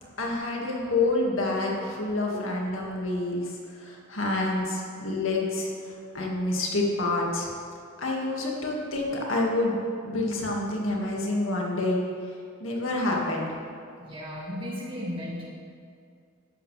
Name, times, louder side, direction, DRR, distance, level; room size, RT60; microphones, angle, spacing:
voice 1, 0.2-3.4 3.8-5.7 6.1-7.5 8.0-9.8 10.0-12.0 12.6-13.5, left 2 dB, 75° left, -2 dB, 2.1 m, -27 dB
voice 2, 14.0-15.4, equal, 25° right, -5 dB, 2.4 m, -35 dB
13.5 x 11.0 x 3.4 m, 2.4 s
head